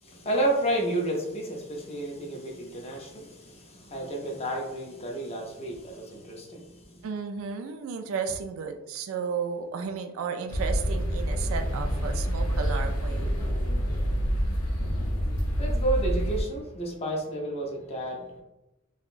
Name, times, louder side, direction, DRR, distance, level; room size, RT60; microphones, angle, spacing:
voice 1, 0.0-7.0 15.6-18.4, right 1 dB, 30° left, 0 dB, 0.6 m, -31 dB
voice 2, 7.0-13.3, right 6 dB, 70° right, 6 dB, 0.3 m, -33 dB
sound 1, 10.5-16.4, equal, 85° left, 0.7 m, -27 dB
3.5 x 2.1 x 2.4 m, 0.95 s
head